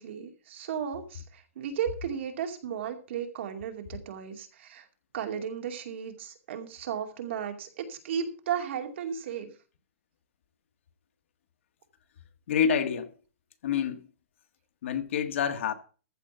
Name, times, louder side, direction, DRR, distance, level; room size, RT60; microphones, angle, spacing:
voice 1, 0.0-4.9 5.1-9.5, right 8 dB, 55° right, 2.5 m, -35 dB
voice 2, 12.5-13.1 13.6-14.1 14.8-15.7, left 7 dB, 60° left, 1.5 m, -27 dB
14.5 x 5.4 x 7.9 m
supercardioid pair, 180°, 7 cm